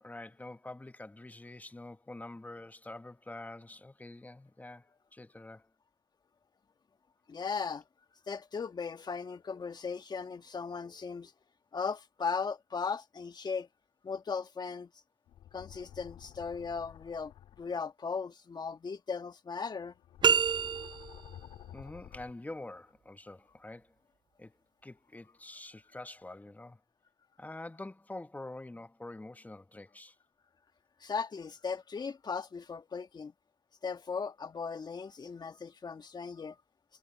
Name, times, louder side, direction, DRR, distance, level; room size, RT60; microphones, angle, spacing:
voice 1, 0.0-5.7 21.7-23.9 24.4-24.5 24.8-26.8 27.4-30.1, left 2 dB, 15° left, 1.6 m, -46 dB
voice 2, 7.3-7.8 8.3-11.3 11.7-13.7 14.0-14.9 15.5-17.3 17.6-19.9 31.0-33.3 33.8-36.6, left 5 dB, 45° left, 1.9 m, -37 dB
sound 1, 15.3-17.7 19.8-22.3, left 11 dB, 80° left, 2.4 m, -51 dB
sound 2, 20.2-21.3, right 7 dB, 50° right, 0.4 m, -27 dB
supercardioid pair, 55°, 10 cm